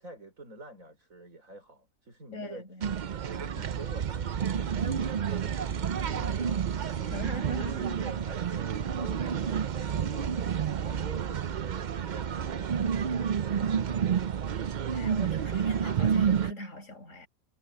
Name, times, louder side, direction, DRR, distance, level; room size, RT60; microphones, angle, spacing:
voice 1, 0.0-2.6 3.2-7.3 7.8-14.9, right 2 dB, 70° right, 5.7 m, -48 dB
voice 2, 2.3-2.9 6.1-6.3 7.1-8.0 14.9-17.3, left 1 dB, 60° left, 6.8 m, -41 dB
sound 1, 2.8-16.5, right 7 dB, 55° right, 0.5 m, -30 dB
sound 2, 4.4-11.1, equal, 5° right, 5.1 m, -52 dB
omnidirectional pair, 1.5 m